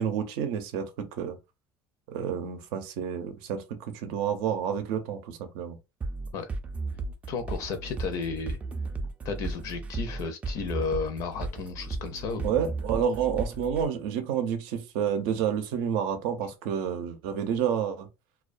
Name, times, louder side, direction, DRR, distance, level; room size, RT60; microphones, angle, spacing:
voice 1, 0.0-1.4 2.1-5.8 12.4-18.1, right 8 dB, 85° right, 0.6 m, -29 dB
sound 1, 6.0-13.8, right 3 dB, 20° right, 0.3 m, -34 dB
voice 2, 7.3-8.6 9.2-12.5, left 5 dB, 55° left, 0.5 m, -33 dB
2.2 x 2.2 x 2.5 m
cardioid pair, 150°, 7 cm